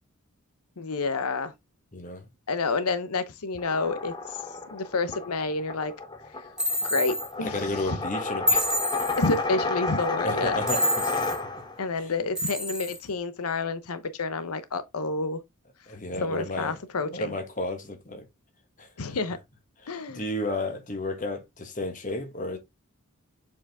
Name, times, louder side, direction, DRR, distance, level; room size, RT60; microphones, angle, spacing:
voice 1, 0.8-1.5 2.5-5.9 6.4-6.5 6.8-8.0 9.2-10.6 11.8-15.4 16.1-17.3 19.0-19.4 19.9-20.2, left 3 dB, 85° left, 0.8 m, -29 dB
voice 2, 1.9-2.3 7.4-8.7 10.2-11.3 12.0-12.1 15.9-16.8 17.0-18.2 18.8-19.1 19.8-22.6, left 2 dB, 35° left, 1.6 m, -33 dB
sound 1, 3.5-11.9, left 3 dB, 20° left, 1.0 m, -32 dB
sound 2, 6.6-7.3 8.5-9.3 10.7-11.4 12.4-13.0, left 1 dB, 5° right, 1.4 m, -27 dB
7.5 x 4.5 x 3.5 m
head